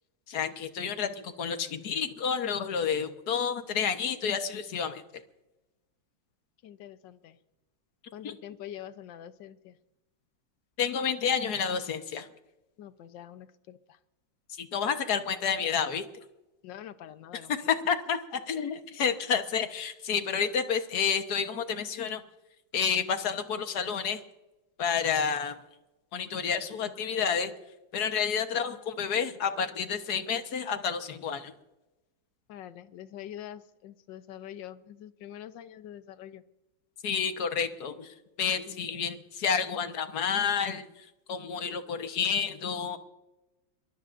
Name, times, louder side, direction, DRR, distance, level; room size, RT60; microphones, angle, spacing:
voice 1, 0.3-5.0 8.2-8.3 10.8-12.3 14.5-16.1 17.5-22.2 22.7-24.2 24.8-25.6 26.1-27.5 27.9-31.5 37.0-43.0, left 7 dB, 60° left, 8 dB, 1.7 m, -30 dB
voice 2, 6.6-7.4 8.1-9.8 12.8-14.0 16.6-17.6 32.5-36.4 38.7-38.8, left 11 dB, 75° left, 12 dB, 1.5 m, -45 dB
23.5 x 19.0 x 2.6 m, 1.0 s
omnidirectional pair, 2.0 m